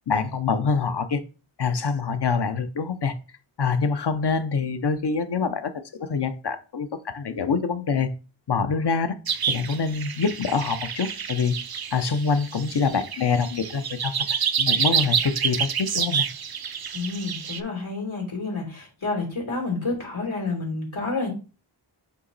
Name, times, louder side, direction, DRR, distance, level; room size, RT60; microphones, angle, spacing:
voice 1, 0.1-1.2 1.6-3.1 3.6-8.1 8.5-9.1 9.5-11.5 11.9-14.1 14.6-16.3, left 5 dB, 55° left, 10 dB, 0.8 m, -25 dB
sound 1, 9.3-17.6, right 7 dB, 50° right, 0.6 m, -28 dB
voice 2, 16.9-21.3, left 3 dB, 75° left, -2 dB, 3.1 m, -29 dB
8.3 x 2.9 x 4.0 m, 0.34 s
wide cardioid pair, 65°, 48 cm